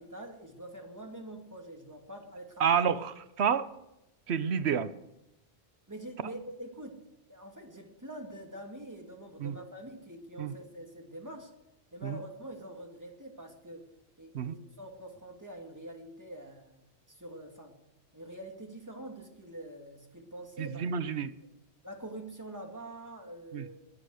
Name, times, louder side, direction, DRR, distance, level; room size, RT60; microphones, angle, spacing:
voice 1, 0.0-2.8 5.9-7.0 7.3-11.5 11.9-13.8 14.2-16.8 17.1-17.8 18.1-20.9 21.8-23.8, right 1 dB, 15° right, 2 dB, 2.6 m, -45 dB
voice 2, 2.6-3.7 4.3-4.9 9.4-9.6 10.4-10.5 12.0-12.2 14.3-14.5 20.6-21.3 23.5-23.7, right 7 dB, 85° right, 13 dB, 1.1 m, -29 dB
21.5 x 9.1 x 6.4 m, 0.90 s
omnidirectional pair, 1.1 m